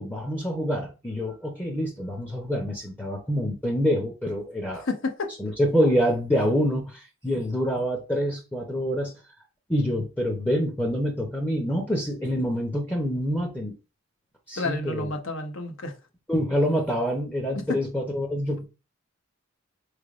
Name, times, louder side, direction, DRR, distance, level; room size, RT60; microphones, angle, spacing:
voice 1, 0.0-4.9 5.4-9.1 9.7-13.7 14.5-15.1 16.3-18.6, equal, 10° left, 0.7 m, -26 dB
voice 2, 4.8-5.3 14.6-15.9 17.7-17.8, left 3 dB, 65° left, 0.8 m, -30 dB
4.7 x 3.3 x 2.4 m
head